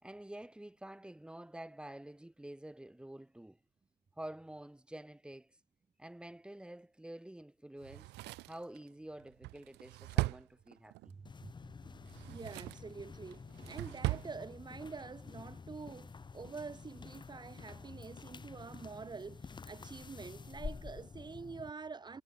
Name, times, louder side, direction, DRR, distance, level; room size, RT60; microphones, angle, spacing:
voice 1, 0.0-3.6 4.2-5.6 6.0-8.1 8.5-11.1, right 1 dB, 5° right, 5.3 m, -49 dB
Drawer open or close, 7.8-11.1 12.0-12.9 13.3-14.3 14.6-14.7, right 20 dB, 85° right, 1.5 m, -39 dB
voice 2, 11.1-11.5 12.3-22.2, right 4 dB, 25° right, 3.6 m, -47 dB
sound 1, 11.2-21.7, left 5 dB, 25° left, 3.9 m, -49 dB
cardioid pair, 110°, 17 cm